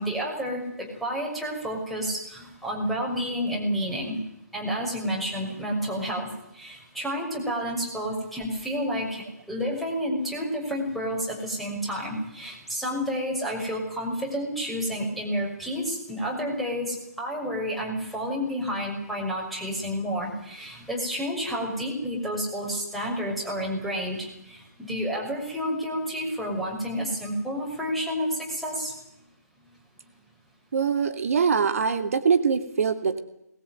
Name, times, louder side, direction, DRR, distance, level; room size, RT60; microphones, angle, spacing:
voice 1, 0.0-4.2 4.5-28.9, equal, ahead, -2 dB, 6.1 m, -30 dB
voice 2, 30.7-33.2, right 6 dB, 55° right, 8 dB, 2.7 m, -23 dB
23.0 x 20.0 x 9.4 m, 0.81 s
figure-of-eight pair, 140°, 9 cm